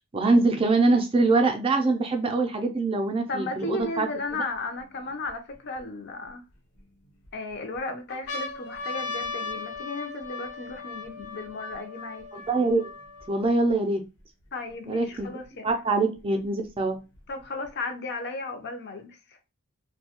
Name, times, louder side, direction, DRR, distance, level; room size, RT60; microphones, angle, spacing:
voice 1, 0.1-4.1 4.3-4.5 12.3-12.9 13.3-14.0 14.9-15.3 15.6-17.0, right 3 dB, 25° right, 0.4 m, -24 dB
voice 2, 3.3-6.4 7.3-12.3 14.5-15.7 17.3-19.1, left 3 dB, 50° left, 0.5 m, -35 dB
sound 1, 3.8-3.9 4.5-5.8 6.5-7.3 7.7-7.8 8.1-13.7 14.4-14.5 14.7-15.7 16.6-17.7, left 3 dB, 85° left, 0.8 m, -38 dB
2.6 x 2.2 x 2.8 m
head